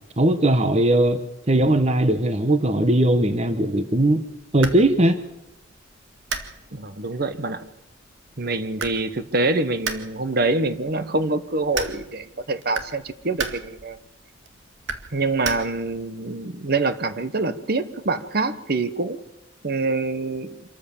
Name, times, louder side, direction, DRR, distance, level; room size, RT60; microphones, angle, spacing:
voice 1, 0.2-4.2 4.5-5.2, right 1 dB, 35° right, 9 dB, 1.0 m, -19 dB
sound 1, 4.2-16.1, right 5 dB, 75° right, 2.0 m, -37 dB
voice 2, 6.7-7.6 8.4-14.0 15.1-19.2 19.6-20.5, right 3 dB, 50° right, 11 dB, 1.1 m, -25 dB
26.0 x 13.5 x 7.2 m, 0.89 s
head